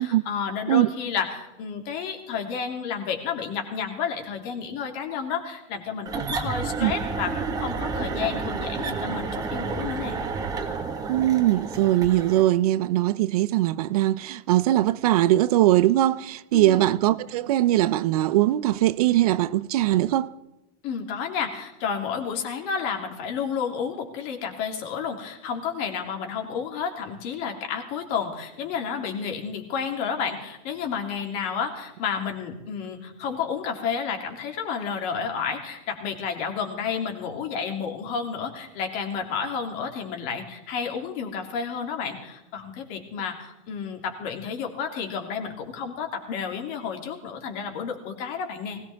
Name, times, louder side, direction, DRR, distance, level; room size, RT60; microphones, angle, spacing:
voice 1, 0.0-10.2 16.5-16.8 20.8-48.8, left 6 dB, 55° left, 2.9 m, -31 dB
sound 1, 6.1-12.5, right 4 dB, 20° right, 1.6 m, -30 dB
voice 2, 11.1-20.3, right 14 dB, 85° right, 0.6 m, -21 dB
20.5 x 17.5 x 3.6 m
supercardioid pair, 150°, 19 cm